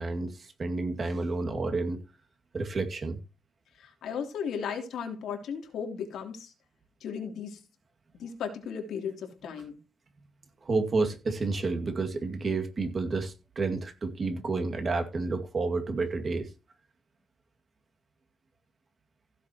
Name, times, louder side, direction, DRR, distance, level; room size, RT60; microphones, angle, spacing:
voice 1, 0.0-2.0 2.5-3.2 10.6-16.5, right 3 dB, 35° right, 2.2 m, -30 dB
voice 2, 3.7-6.5 7.0-7.6 8.1-9.8, left 7 dB, 85° left, 3.2 m, -36 dB
16.0 x 7.2 x 3.0 m
cardioid pair, 130°, 0 cm